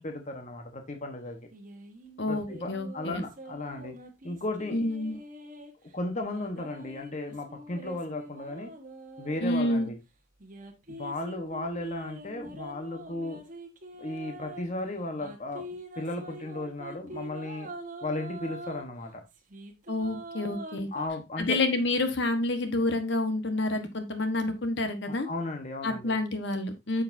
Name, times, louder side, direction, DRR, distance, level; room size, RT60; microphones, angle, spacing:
voice 1, 0.0-1.4 2.3-3.9 4.2-4.9 5.9-8.7 9.2-10.0 10.9-13.4 14.0-15.7 16.0-17.7 18.0-19.2 20.9-21.6 25.1-26.2, left 2 dB, 35° left, 4 dB, 1.2 m, -35 dB
sound 1, 1.5-5.7 6.1-9.9 10.4-14.7 15.2-18.8 19.3-21.1, right 1 dB, 40° right, 1.4 m, -44 dB
voice 2, 2.2-3.2 4.7-5.2 9.4-9.9 19.9-20.9 21.4-25.3 25.8-27.0, left 2 dB, 60° left, 7 dB, 1.2 m, -28 dB
9.1 x 6.6 x 2.7 m, 0.23 s
head